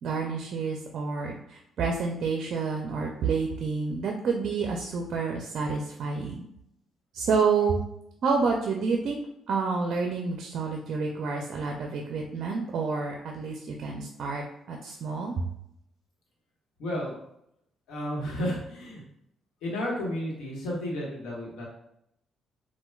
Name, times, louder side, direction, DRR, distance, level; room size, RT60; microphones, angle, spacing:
voice 1, 0.0-6.4 7.1-7.8 8.2-9.2 9.5-15.5, right 4 dB, 65° right, 1 dB, 0.4 m, -29 dB
voice 2, 16.8-17.2 17.9-19.0 19.6-21.6, equal, 85° left, -3 dB, 1.0 m, -32 dB
4.4 x 2.2 x 2.3 m, 0.77 s
cardioid pair, 90°, 0 cm